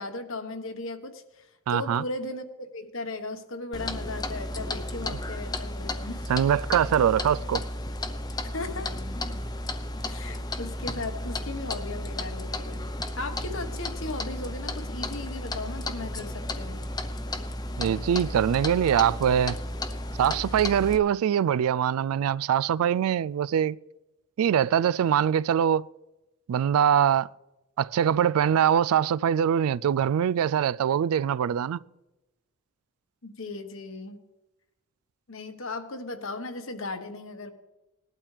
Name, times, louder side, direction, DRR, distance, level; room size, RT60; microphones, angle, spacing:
voice 1, 0.0-6.2 8.5-8.9 10.0-12.8 13.2-16.8 33.2-34.2 35.3-37.5, left 2 dB, 65° left, 1.3 m, -37 dB
voice 2, 1.7-2.0 6.3-7.6 17.8-19.6 20.2-23.8 24.4-25.8 26.5-27.3 27.8-31.8, right 9 dB, 85° right, 0.3 m, -23 dB
Clock, 3.7-21.0, left 1 dB, 20° left, 0.7 m, -33 dB
19.0 x 12.0 x 3.3 m
head